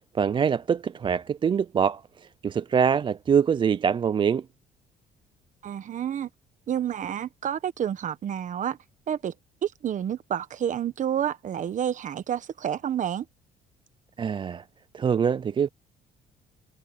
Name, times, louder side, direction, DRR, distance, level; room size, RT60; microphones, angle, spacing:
voice 1, 0.1-2.0 2.4-4.4 14.2-14.6 14.9-15.7, right 7 dB, 30° right, 0.4 m, -24 dB
voice 2, 5.6-6.3 6.7-8.8 9.1-9.3 9.6-13.3, right 9 dB, 50° right, 1.3 m, -29 dB
cardioid pair, 110°, 17 cm